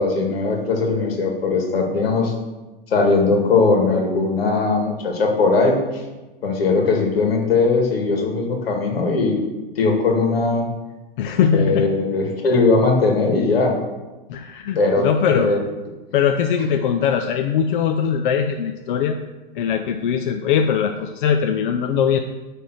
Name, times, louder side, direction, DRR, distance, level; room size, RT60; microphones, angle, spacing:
voice 1, 0.0-2.3 2.9-6.0 6.4-9.4 9.8-10.7 11.5-13.8 14.8-15.6, left 3 dB, 90° left, 1 dB, 2.1 m, -19 dB
voice 2, 11.2-11.9 14.3-15.5 16.1-19.2 19.5-22.2, left 7 dB, 60° left, 5 dB, 0.6 m, -20 dB
8.5 x 3.5 x 6.2 m, 1.1 s
hypercardioid pair, 145°, 29 cm